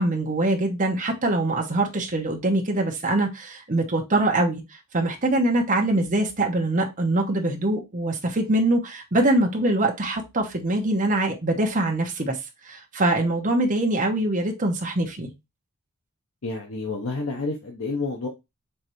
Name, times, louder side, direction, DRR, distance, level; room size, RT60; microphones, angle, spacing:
voice 1, 0.0-4.6 4.9-12.3 12.7-15.3, right 2 dB, 35° right, 2 dB, 1.0 m, -23 dB
voice 2, 16.4-18.3, left 3 dB, 65° left, 1 dB, 0.8 m, -29 dB
4.5 x 3.3 x 3.0 m, 0.22 s
head